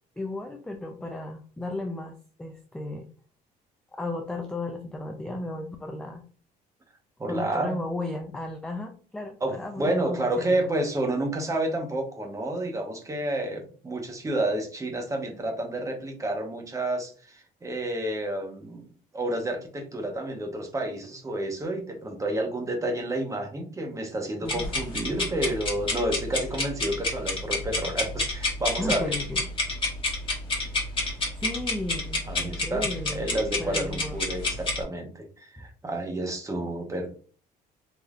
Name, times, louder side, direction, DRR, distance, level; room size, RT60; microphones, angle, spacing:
voice 1, 0.2-3.1 3.9-6.2 7.3-10.5 24.4-24.7 28.8-29.5 31.3-33.2 33.6-34.2 35.6-35.7, left 2 dB, 5° left, 3 dB, 0.3 m, -34 dB
voice 2, 7.2-7.7 9.4-18.9 19.1-29.1 32.3-37.2, right 1 dB, 20° right, 3 dB, 0.8 m, -30 dB
sound 1, 24.5-34.8, left 2 dB, 30° left, 1.2 m, -29 dB
3.4 x 2.6 x 2.3 m, 0.42 s
cardioid pair, 110°, 17 cm